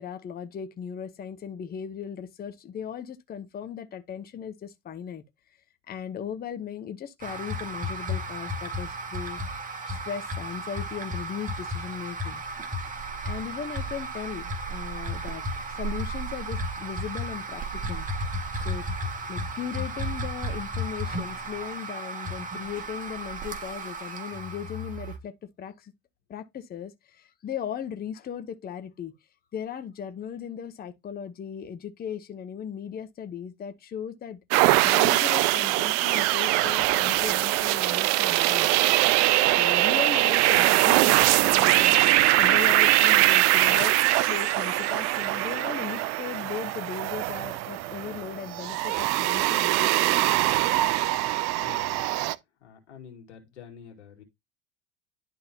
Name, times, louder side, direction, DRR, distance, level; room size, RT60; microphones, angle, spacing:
voice 1, 0.0-5.2 5.9-9.4 9.9-12.4 13.2-18.1 18.6-18.8 19.3-25.9 26.3-29.1 29.5-34.4 34.8-38.7 39.5-43.9 44.3-50.2, left 8 dB, 25° left, 0.9 m, -37 dB
sound 1, 7.2-25.2, right 1 dB, 25° right, 2.1 m, -34 dB
sound 2, 34.5-52.3, right 18 dB, 50° right, 0.6 m, -22 dB
voice 2, 51.6-52.1 52.6-54.2, left 7 dB, 85° left, 2.3 m, -47 dB
11.0 x 3.7 x 2.9 m
hypercardioid pair, 80°, 34 cm